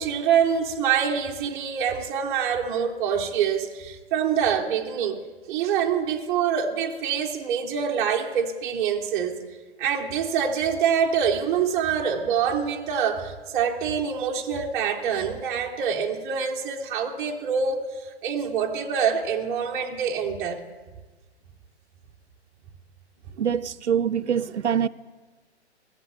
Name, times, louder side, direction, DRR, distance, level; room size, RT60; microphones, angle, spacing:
voice 1, 0.0-5.2 5.5-9.4 9.8-20.6, right 7 dB, 10° right, 0.4 m, -25 dB
voice 2, 23.4-24.9, right 8 dB, 85° right, 0.5 m, -24 dB
14.5 x 7.2 x 7.9 m
figure-of-eight pair, 125°, 34 cm